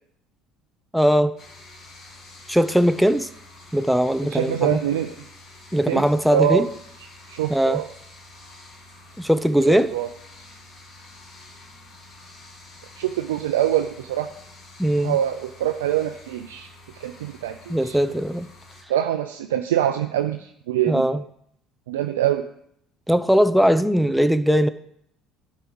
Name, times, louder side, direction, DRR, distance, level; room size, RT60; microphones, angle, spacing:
voice 1, 0.9-1.3 2.5-3.3 3.7-4.8 5.7-6.7 7.5-7.8 9.2-9.9 14.8-15.2 17.7-18.5 20.9-21.2 23.1-24.7, equal, ahead, 12 dB, 0.7 m, -19 dB
sound 1, 1.4-18.8, left 2 dB, 50° left, 2.4 m, -47 dB
voice 2, 4.3-5.1 5.9-6.0 6.3-6.7 7.3-7.9 9.7-10.1 13.0-14.3 15.0-16.7 17.0-18.0 18.9-21.1 21.9-22.4, right 11 dB, 90° right, 6 dB, 0.5 m, -24 dB
11.0 x 4.8 x 7.0 m, 0.71 s
hypercardioid pair, 70°, 0 cm